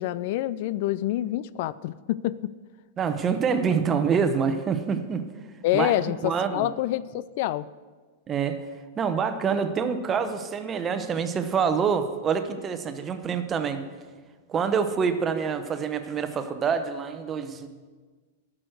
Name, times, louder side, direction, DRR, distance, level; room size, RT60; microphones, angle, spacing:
voice 1, 0.0-2.5 5.6-7.7, left 14 dB, 60° left, 18 dB, 0.3 m, -27 dB
voice 2, 3.0-5.2 5.7-5.9 6.2-6.7 8.3-8.6 9.0-13.8 14.5-17.7, right 6 dB, 25° right, 9 dB, 0.9 m, -26 dB
12.5 x 6.3 x 6.4 m, 1.4 s
hypercardioid pair, 125°, 0 cm